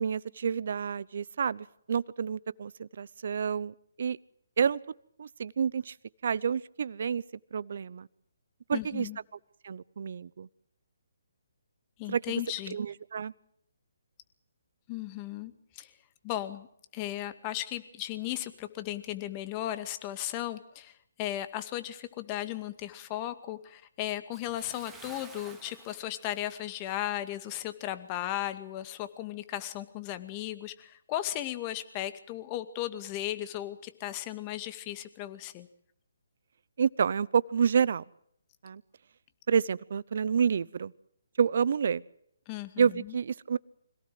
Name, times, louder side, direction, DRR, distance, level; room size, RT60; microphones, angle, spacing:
voice 1, 0.0-4.2 4.6-4.8 5.2-5.9 6.2-7.2 7.5-8.1 8.7-9.1 9.6-10.5 12.1-12.2 12.7-13.3 36.8-38.0 38.6-38.8 39.5-40.9 41.4-42.0 42.8-43.6, right 7 dB, 55° right, 20 dB, 0.8 m, -29 dB
voice 2, 8.7-9.2 12.0-12.8 14.9-15.9 16.2-16.7 16.9-35.7 42.5-43.1, left 13 dB, 25° left, 10 dB, 2.1 m, -36 dB
Bathtub (filling or washing) / Splash splatter, 24.3-27.2 27.5-27.7 28.3-28.4, right 4 dB, 5° right, 3.1 m, -52 dB
26.0 x 18.0 x 7.8 m, 0.69 s
figure-of-eight pair, 145°, 0 cm